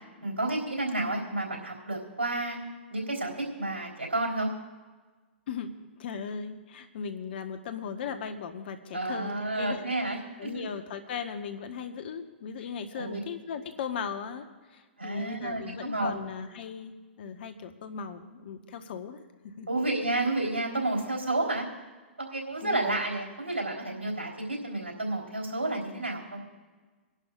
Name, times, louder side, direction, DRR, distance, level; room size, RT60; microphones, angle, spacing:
voice 1, 0.2-2.6 2.9-4.5 8.9-10.6 13.0-13.2 15.0-16.1 19.7-21.6 22.2-26.4, right 2 dB, 85° right, -1 dB, 3.7 m, -31 dB
voice 2, 5.5-9.8 10.4-19.7 22.6-23.0, left 6 dB, 60° left, 7 dB, 1.3 m, -38 dB
27.5 x 11.5 x 2.5 m, 1.3 s
hypercardioid pair, 115°, 6 cm